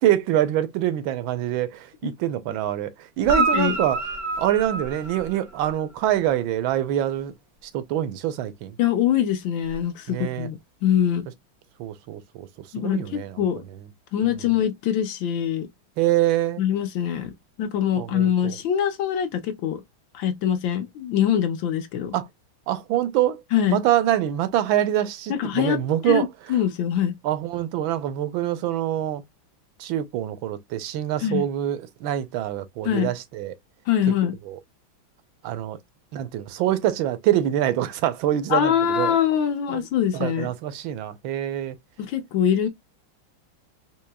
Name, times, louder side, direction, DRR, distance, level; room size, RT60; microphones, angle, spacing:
voice 1, 0.0-4.0 4.4-7.3 7.6-8.7 10.1-10.5 11.8-12.5 12.8-13.4 14.2-14.4 16.0-16.6 18.0-18.6 22.1-22.3 22.7-23.4 23.7-26.3 27.2-29.2 29.8-33.5 34.5-34.6 35.4-35.8 36.1-39.2 39.7-39.8 40.1-41.8, right 12 dB, 80° right, 1.4 m, -25 dB
Guitar, 3.2-5.8 9.7-9.8, right 3 dB, 55° right, 0.7 m, -27 dB
voice 2, 3.4-3.8 8.8-11.3 12.7-13.6 14.1-15.7 16.6-17.3 17.6-19.8 20.1-22.1 23.5-23.8 25.3-25.8 26.1-27.2 31.2-31.4 32.8-33.1 33.9-34.4 38.5-40.5 42.0-42.7, left 9 dB, 70° left, 1.4 m, -23 dB
4.7 x 2.8 x 2.2 m
omnidirectional pair, 2.2 m